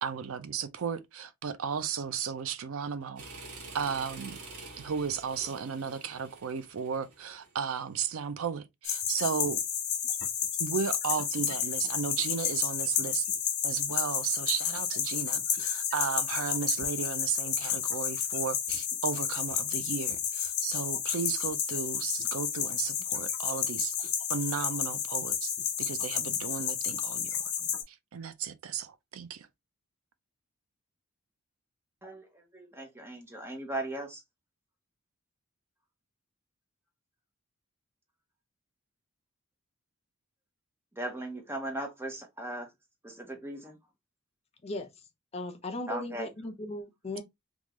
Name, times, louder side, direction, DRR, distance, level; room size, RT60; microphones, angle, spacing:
voice 1, 0.0-3.2 3.7-4.4 4.8-9.6 10.6-13.3 13.6-29.5, right 7 dB, 70° right, 0.5 m, -34 dB
sound 1, 3.2-8.0, right 3 dB, 85° right, 1.5 m, -47 dB
sound 2, 8.8-27.8, left 8 dB, 80° left, 1.0 m, -31 dB
voice 2, 32.0-34.2 40.9-42.7 43.0-43.8 45.9-46.3, right 1 dB, 10° right, 0.9 m, -38 dB
voice 3, 44.6-45.1 45.3-47.2, left 1 dB, 30° left, 0.5 m, -37 dB
3.5 x 2.4 x 3.0 m
head